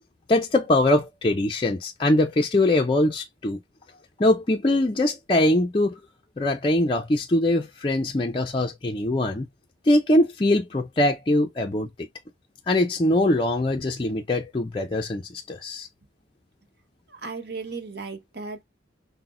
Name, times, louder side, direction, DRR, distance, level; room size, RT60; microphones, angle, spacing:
voice 1, 0.3-3.6 4.2-6.0 6.4-9.5 9.9-11.9 12.7-15.9, left 1 dB, 25° left, 0.5 m, -22 dB
voice 2, 17.2-18.6, right 4 dB, 60° right, 1.1 m, -35 dB
5.8 x 2.1 x 2.5 m
head